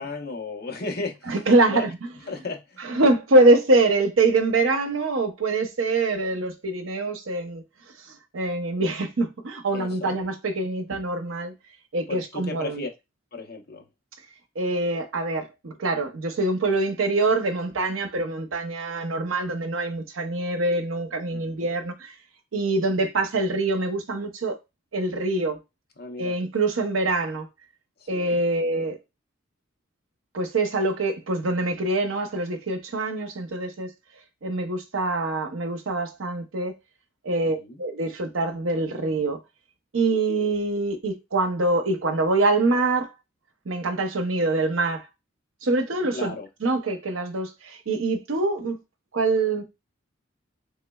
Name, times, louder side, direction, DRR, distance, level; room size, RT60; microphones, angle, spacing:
voice 1, 0.0-1.4 1.7-1.9 2.3-2.9 9.7-10.2 12.1-12.9 13.3-13.8 21.3-21.7 26.0-26.4 28.0-28.4 37.4-37.8 46.1-46.5, left 3 dB, 50° left, 0.8 m, -35 dB
voice 2, 1.3-1.9 2.8-7.6 8.1-11.5 11.9-12.8 14.6-22.1 22.5-24.6 24.9-25.6 26.2-27.5 28.1-29.0 30.3-33.9 34.4-36.7 37.2-39.4 39.9-43.1 43.7-45.1 45.6-46.3 46.6-48.8 49.1-49.6, right 2 dB, 80° right, 0.7 m, -24 dB
3.6 x 3.1 x 2.3 m
head